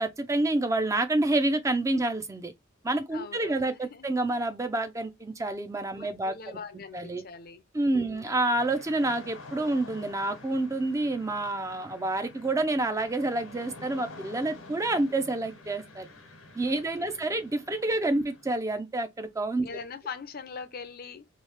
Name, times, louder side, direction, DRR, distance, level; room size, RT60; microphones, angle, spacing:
voice 1, 0.0-2.5 2.8-6.6 6.9-7.2 7.7-16.1 16.6-19.7, right 2 dB, 15° right, 0.4 m, -28 dB
voice 2, 3.1-4.1 5.9-7.6 7.9-8.6 16.6-17.4 19.6-21.3, left 5 dB, 45° left, 0.5 m, -43 dB
sound 1, 8.5-18.5, left 2 dB, 90° left, 1.1 m, -48 dB
3.1 x 2.7 x 3.2 m
head